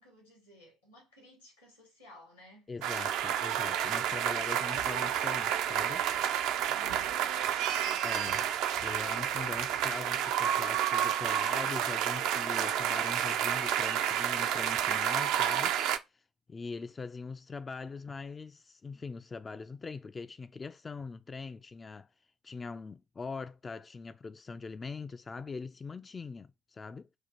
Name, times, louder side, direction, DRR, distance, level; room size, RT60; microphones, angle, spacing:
voice 1, 0.0-2.7 6.7-8.0, left 1 dB, 90° left, 2.1 m, -57 dB
voice 2, 2.7-6.0 8.0-8.5 8.8-15.8 16.1-16.2 16.5-22.1 22.4-27.1, left 4 dB, 25° left, 0.3 m, -42 dB
sound 1, 2.8-16.0, right 10 dB, 60° right, 0.4 m, -30 dB
4.1 x 2.4 x 4.3 m
figure-of-eight pair, 55°, 0 cm